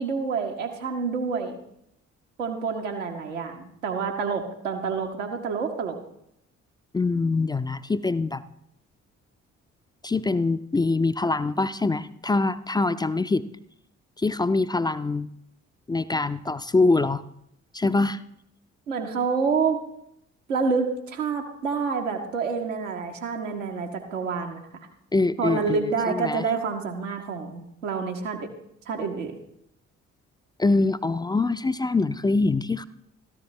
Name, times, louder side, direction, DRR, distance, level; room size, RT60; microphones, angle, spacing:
voice 1, 0.0-1.6 2.4-6.0 18.9-19.8 20.5-24.6 25.4-28.5 28.9-29.3, right 5 dB, 80° right, 3 dB, 1.2 m, -28 dB
voice 2, 6.9-8.4 10.0-13.4 14.2-15.3 15.9-17.2 17.7-18.2 25.1-26.4 30.6-32.9, left 3 dB, 10° left, 12 dB, 0.4 m, -24 dB
14.0 x 12.0 x 3.2 m, 0.76 s
figure-of-eight pair, 40°, 38 cm